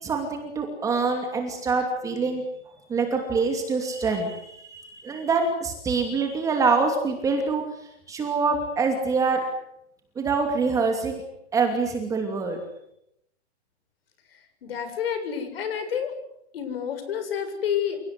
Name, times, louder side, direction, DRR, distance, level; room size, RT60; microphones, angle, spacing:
voice 1, 0.0-2.4 2.9-7.6 8.1-9.4 10.2-11.2 11.5-12.6, right 4 dB, 10° right, 4 dB, 2.7 m, -25 dB
voice 2, 14.6-16.1 16.5-18.0, left 8 dB, 55° left, 9 dB, 7.5 m, -29 dB
28.5 x 18.0 x 9.7 m, 0.80 s
hypercardioid pair, 170°, 34 cm